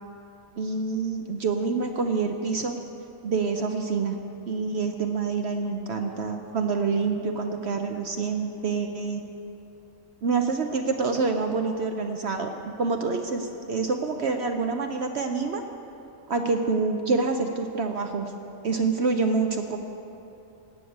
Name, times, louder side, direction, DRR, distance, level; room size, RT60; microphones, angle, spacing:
voice 1, 0.6-2.8 3.2-4.2 4.5-9.2 10.2-15.6 16.3-18.3 18.6-19.8, right 4 dB, 60° right, 5 dB, 0.9 m, -27 dB
17.0 x 6.4 x 8.6 m, 2.9 s
omnidirectional pair, 1.4 m